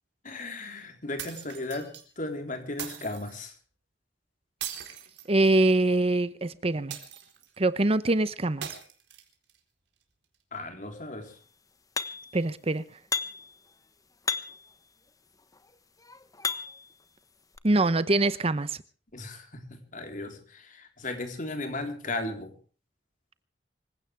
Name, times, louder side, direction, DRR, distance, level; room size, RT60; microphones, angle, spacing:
voice 1, 0.2-3.6 10.5-11.4 19.1-22.5, left 2 dB, 45° left, 4.0 m, -36 dB
sound 1, 1.2-2.0 2.8-3.4 4.6-5.8 6.9-7.6 8.6-9.6, right 10 dB, 80° right, 4.1 m, -40 dB
voice 2, 5.3-7.0 7.6-8.8 12.3-12.8 17.6-18.8, right 2 dB, 35° right, 0.8 m, -24 dB
sound 2, 12.0-12.4 13.1-13.5 14.2-14.7 15.5-16.9 17.6-17.7, left 5 dB, 20° left, 1.2 m, -33 dB
26.0 x 16.5 x 3.4 m
head